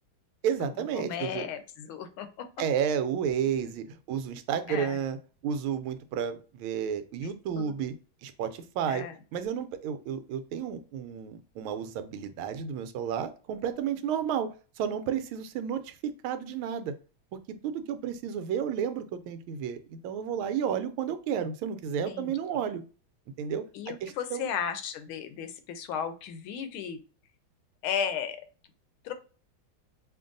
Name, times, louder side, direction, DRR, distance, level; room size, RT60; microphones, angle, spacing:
voice 1, 0.4-1.5 2.6-5.2 5.4-7.9 8.2-9.0 9.3-16.9 17.6-22.8 23.4-23.6 24.0-24.5, right 8 dB, 90° right, 11 dB, 1.4 m, -32 dB
voice 2, 1.0-2.5 4.7-5.0 7.2-7.7 8.8-9.1 22.0-22.4 23.7-27.0 27.8-28.4 29.0-29.1, left 8 dB, 85° left, 9 dB, 1.5 m, -35 dB
5.2 x 2.5 x 2.5 m, 0.36 s
omnidirectional pair, 2.2 m